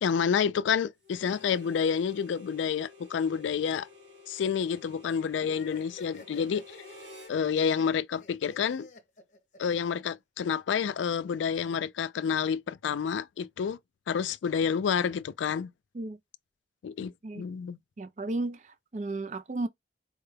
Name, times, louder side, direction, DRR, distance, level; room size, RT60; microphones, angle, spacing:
voice 1, 0.0-3.9 4.3-6.6 7.3-8.9 9.6-13.8 14.1-15.7 16.8-17.8, left 7 dB, 85° left, 0.3 m, -29 dB
Harmonica, 1.0-7.4, left 3 dB, 80° right, 2.9 m, -52 dB
sound 1, 5.4-10.0, left 3 dB, 40° left, 0.8 m, -49 dB
voice 2, 18.0-19.7, right 2 dB, 40° right, 0.4 m, -34 dB
4.3 x 2.2 x 3.2 m
head